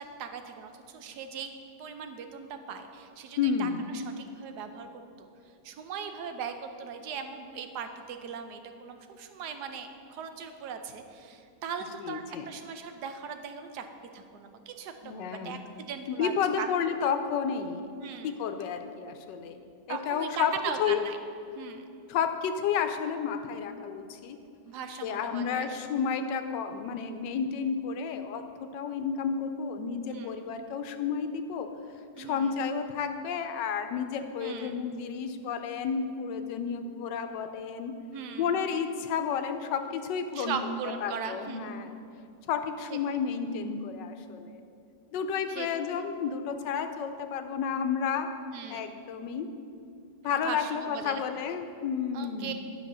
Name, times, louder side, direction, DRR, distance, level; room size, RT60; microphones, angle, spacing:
voice 1, 0.0-1.5 1.8-5.3 5.6-13.9 14.1-16.7 18.0-18.4 19.9-21.2 21.5-21.9 24.7-25.7 30.1-30.5 32.2-32.5 34.4-34.9 38.1-38.7 40.3-41.7 42.9-43.0 45.5-45.7 48.5-49.0 50.4-51.2 52.1-52.5, right 6 dB, 75° right, 7 dB, 1.2 m, -39 dB
voice 2, 3.4-3.9 12.0-12.5 15.0-15.6 16.1-17.9 18.2-20.5 20.8-21.0 22.1-24.4 25.0-31.7 32.2-37.9 38.4-40.6 41.0-41.9 42.5-44.6 45.1-48.3 48.7-49.5 50.2-52.5, left 7 dB, 90° left, 8 dB, 1.3 m, -31 dB
10.5 x 5.0 x 6.1 m, 2.6 s
omnidirectional pair, 1.9 m